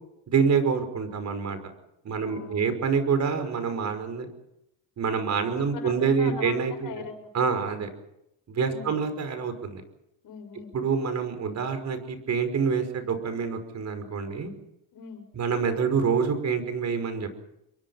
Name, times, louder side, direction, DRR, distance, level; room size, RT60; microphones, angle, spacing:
voice 1, 0.3-1.6 2.0-4.3 5.0-6.9 7.3-7.9 8.5-9.8 10.7-14.5 15.4-17.4, right 5 dB, 40° right, 9 dB, 5.4 m, -26 dB
voice 2, 2.2-2.7 5.6-7.6 8.7-9.0 10.2-10.8 14.9-15.3, left 5 dB, 50° left, 7 dB, 6.7 m, -41 dB
27.5 x 23.0 x 5.8 m, 0.82 s
cardioid pair, 115°, 42 cm